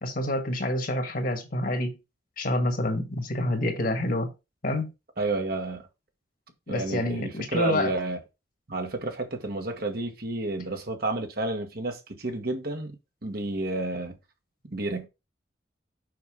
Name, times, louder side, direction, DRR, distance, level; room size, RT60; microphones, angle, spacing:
voice 1, 0.0-2.0 2.4-4.3 4.6-4.9 6.7-7.9, left 1 dB, 50° left, 1.7 m, -27 dB
voice 2, 5.2-5.8 6.7-8.2 8.7-13.0 13.2-14.1 14.6-15.1, right 2 dB, 55° right, 1.6 m, -30 dB
6.6 x 5.7 x 3.7 m
head